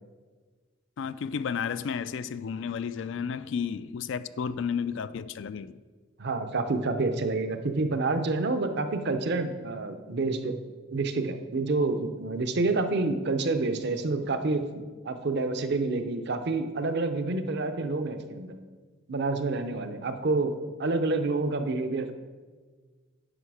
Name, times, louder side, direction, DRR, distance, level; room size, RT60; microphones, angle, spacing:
voice 1, 1.0-5.8, left 6 dB, 65° left, 0.3 m, -32 dB
voice 2, 6.2-10.6 10.9-14.6 15.0-18.6 19.1-20.5 20.8-22.1, right 3 dB, 55° right, 0.7 m, -28 dB
10.0 x 5.5 x 4.8 m
head